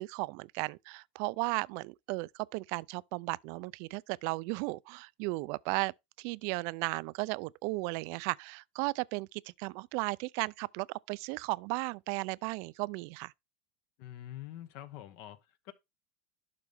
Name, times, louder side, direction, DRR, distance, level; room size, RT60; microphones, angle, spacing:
voice 1, 0.0-5.9 6.2-13.3, right 25 dB, 55° right, 0.4 m, -35 dB
voice 2, 14.0-15.7, left 13 dB, 60° left, 1.3 m, -46 dB
11.5 x 4.0 x 3.5 m
supercardioid pair, 125°, 6 cm